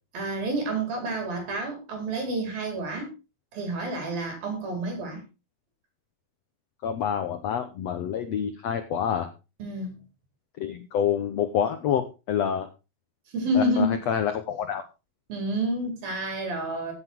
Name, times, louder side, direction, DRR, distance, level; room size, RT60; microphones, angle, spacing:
voice 1, 0.1-3.1 3.5-5.2 9.6-10.0 13.3-14.0 15.3-16.9, right 1 dB, 70° right, 6.2 m, -29 dB
voice 2, 6.8-9.3 10.6-12.7 13.5-14.8, left 8 dB, 70° left, 1.5 m, -27 dB
16.0 x 8.0 x 4.6 m
omnidirectional pair, 4.3 m